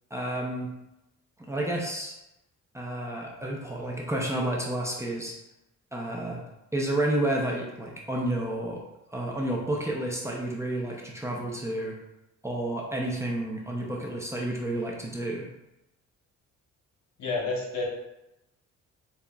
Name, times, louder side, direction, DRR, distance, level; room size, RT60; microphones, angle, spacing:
voice 1, 0.1-0.7 1.5-2.2 2.7-5.3 5.9-6.4 6.7-8.8 9.1-11.9 12.4-15.5, right 1 dB, 10° right, -2 dB, 0.6 m, -30 dB
voice 2, 17.2-17.9, left 3 dB, 65° left, -1 dB, 1.0 m, -29 dB
5.4 x 2.2 x 2.3 m, 0.90 s
cardioid pair, 90°, 30 cm